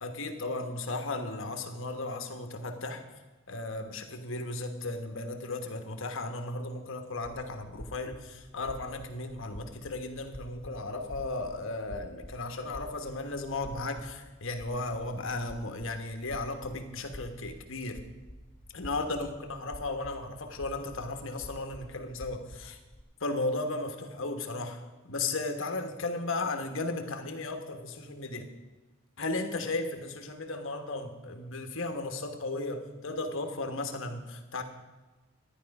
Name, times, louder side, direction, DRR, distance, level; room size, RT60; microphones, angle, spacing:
voice 1, 0.0-3.0 3.5-18.0 18.7-22.8 23.2-28.5 29.2-34.6, left 2 dB, 60° left, 6 dB, 1.3 m, -35 dB
sound 1, 7.1-23.0, equal, 15° left, 2.1 m, -49 dB
12.5 x 10.5 x 5.4 m, 1.2 s
head